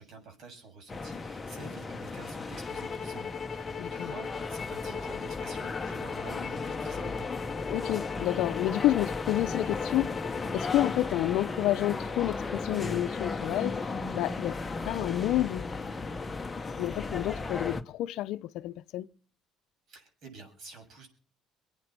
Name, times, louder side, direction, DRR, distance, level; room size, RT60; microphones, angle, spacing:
voice 1, 0.0-7.3 19.9-21.1, right 3 dB, 60° right, 7.5 m, -49 dB
sound 1, 0.9-17.8, left 3 dB, 20° left, 1.2 m, -35 dB
sound 2, 2.6-11.0, left 6 dB, 35° left, 1.7 m, -39 dB
voice 2, 3.8-4.1 7.7-10.1 10.5-13.8 14.1-15.7 16.8-19.1, left 15 dB, 75° left, 0.7 m, -29 dB
25.0 x 9.0 x 6.1 m
cardioid pair, 105°, 0 cm